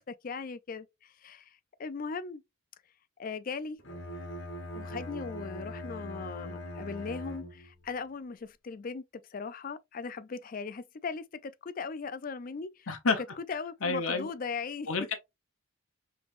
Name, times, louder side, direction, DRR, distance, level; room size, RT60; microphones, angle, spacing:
voice 1, 0.0-2.4 3.2-3.8 4.7-9.0 9.3-12.9 13.2-14.9, left 5 dB, 40° left, 0.4 m, -38 dB
Bowed string instrument, 3.8-7.9, left 1 dB, 55° left, 1.2 m, -41 dB
voice 2, 12.9-13.2 13.8-14.3 14.9-15.1, left 4 dB, 80° left, 1.0 m, -29 dB
5.2 x 3.2 x 2.5 m
head